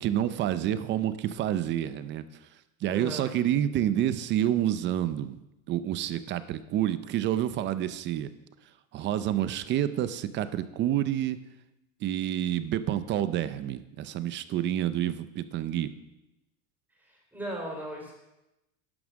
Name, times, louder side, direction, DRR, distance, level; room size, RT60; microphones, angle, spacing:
voice 1, 0.0-2.5 2.8-5.4 5.7-8.3 8.9-11.4 12.0-15.9, right 11 dB, 30° right, 13 dB, 0.5 m, -28 dB
voice 2, 2.9-3.3 17.0-18.1, right 1 dB, 5° right, 0 dB, 3.4 m, -37 dB
11.5 x 11.0 x 6.3 m, 0.94 s
supercardioid pair, 160°, 40 cm